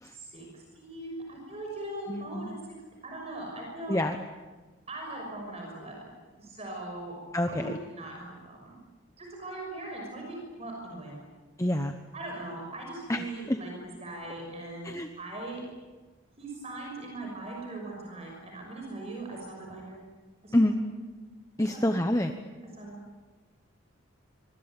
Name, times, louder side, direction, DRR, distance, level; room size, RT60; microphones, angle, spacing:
voice 1, 0.0-2.8 3.0-4.0 4.9-8.8 9.2-11.2 12.1-13.7 14.0-15.6 16.4-20.0 20.4-20.7 21.7-21.8 22.8-23.0, right 2 dB, 30° right, 0 dB, 6.1 m, -40 dB
voice 2, 2.1-2.6 3.9-4.2 7.3-7.8 11.6-12.0 13.1-13.6 14.8-15.1 20.5-20.8 21.6-22.3, left 1 dB, 15° left, 6 dB, 1.0 m, -27 dB
25.5 x 24.5 x 9.0 m, 1.3 s
head